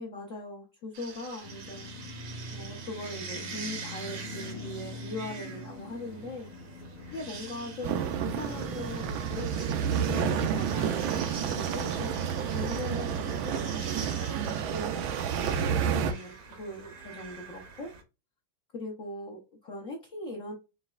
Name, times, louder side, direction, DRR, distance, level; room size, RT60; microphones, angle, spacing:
voice 1, 0.0-1.9 2.5-6.5 7.1-9.5 10.1-12.2 12.5-13.7 14.3-17.9 18.7-20.5, left 2 dB, 55° left, -2 dB, 0.9 m, -40 dB
sound 1, 0.9-18.0, right 5 dB, 55° right, 1.0 m, -44 dB
sound 2, 1.4-13.9, left 1 dB, 75° left, 1.7 m, -44 dB
sound 3, 7.8-16.1, right 8 dB, 75° right, 1.3 m, -30 dB
5.2 x 3.0 x 2.3 m, 0.28 s
omnidirectional pair, 2.4 m